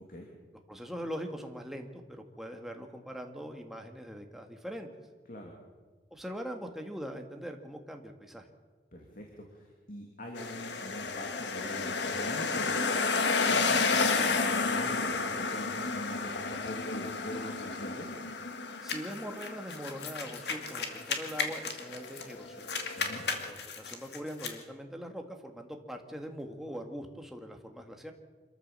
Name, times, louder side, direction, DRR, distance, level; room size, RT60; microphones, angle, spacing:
voice 1, 0.7-4.9 6.1-8.5 18.8-22.7 23.5-28.1, equal, ahead, 3 dB, 1.9 m, -42 dB
voice 2, 8.9-13.1 13.4-18.2 23.0-23.2, equal, 50° left, 1 dB, 2.8 m, -43 dB
sound 1, 10.4-23.5, left 4 dB, 85° left, 1.6 m, -32 dB
sound 2, 18.9-22.3 22.6-24.6, left 5 dB, 70° left, 2.4 m, -36 dB
26.0 x 14.0 x 7.6 m, 1.4 s
head